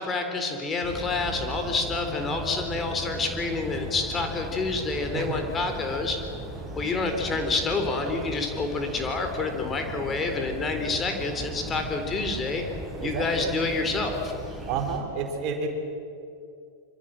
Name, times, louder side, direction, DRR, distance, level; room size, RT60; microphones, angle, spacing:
voice 1, 0.0-6.2 6.8-12.6 13.0-14.2, left 3 dB, 20° left, 5 dB, 3.7 m, -28 dB
sound 1, 0.8-15.0, right 1 dB, ahead, 6.2 m, -37 dB
voice 2, 13.0-13.5 14.7-15.7, right 5 dB, 40° right, 4 dB, 4.1 m, -30 dB
25.5 x 25.0 x 7.7 m, 2.6 s
figure-of-eight pair, 90°, 0 cm